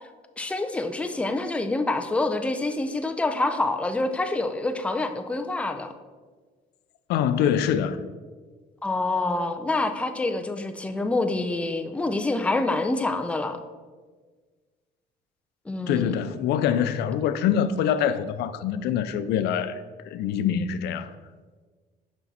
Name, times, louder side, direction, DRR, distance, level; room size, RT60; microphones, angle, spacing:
voice 1, 0.4-5.9 8.8-13.6 15.7-16.1, left 2 dB, 5° left, 0.4 m, -26 dB
voice 2, 7.1-8.0 15.8-19.8 20.1-21.1, left 9 dB, 80° left, 0.4 m, -24 dB
5.8 x 5.4 x 4.2 m
cardioid pair, 110°, 17 cm